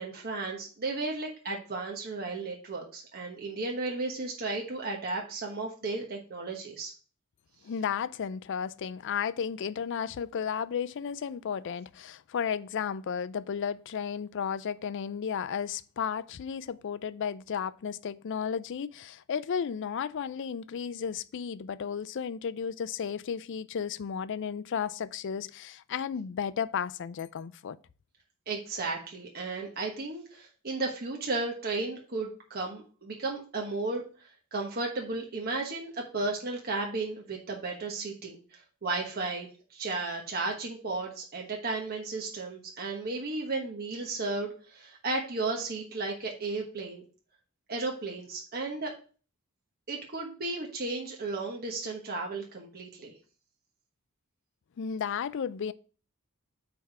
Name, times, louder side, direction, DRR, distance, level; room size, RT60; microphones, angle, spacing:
voice 1, 0.0-6.9 28.5-47.0 47.7-48.9 49.9-53.1, right 3 dB, 45° right, 1.2 m, -34 dB
voice 2, 7.6-27.8 54.8-55.7, left 7 dB, 55° left, 0.4 m, -33 dB
8.6 x 3.5 x 4.8 m
head